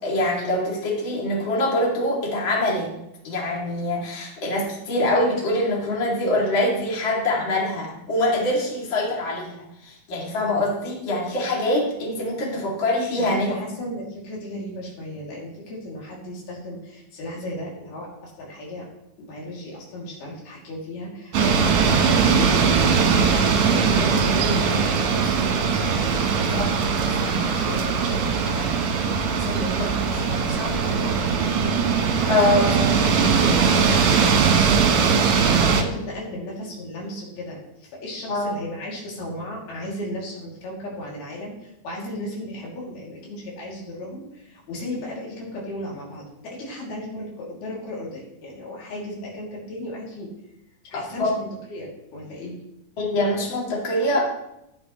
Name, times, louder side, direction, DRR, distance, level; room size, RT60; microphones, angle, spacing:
voice 1, 0.0-2.9 3.2-9.6 9.8-13.6 26.5-26.6 32.3-33.0 38.3-38.5 50.9-51.4 53.0-54.2, left 1 dB, 35° left, -3 dB, 3.0 m, -24 dB
voice 2, 13.1-18.9 19.2-28.8 29.1-31.8 32.2-32.3 32.6-32.7 33.0-34.8 35.1-50.3 50.8-52.6, left 1 dB, 80° left, -4 dB, 4.7 m, -35 dB
sound 1, 21.3-35.8, right 5 dB, 65° right, 2.1 m, -20 dB
14.0 x 9.5 x 3.1 m, 0.85 s
omnidirectional pair, 4.3 m